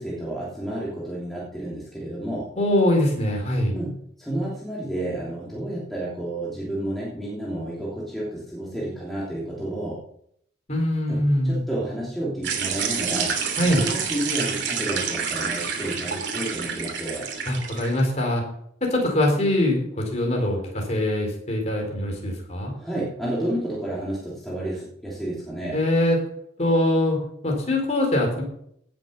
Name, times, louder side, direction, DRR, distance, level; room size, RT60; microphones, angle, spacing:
voice 1, 0.0-2.5 3.7-10.0 11.1-13.3 13.7-17.3 22.8-25.8, right 1 dB, ahead, -6 dB, 2.9 m, -31 dB
voice 2, 2.6-3.8 10.7-11.6 13.6-13.8 17.5-18.4 18.8-22.7 25.7-26.2 26.6-28.4, left 1 dB, 35° left, 0 dB, 4.5 m, -23 dB
sound 1, 12.4-18.0, right 6 dB, 65° right, 2.9 m, -28 dB
17.0 x 7.5 x 5.7 m, 0.70 s
head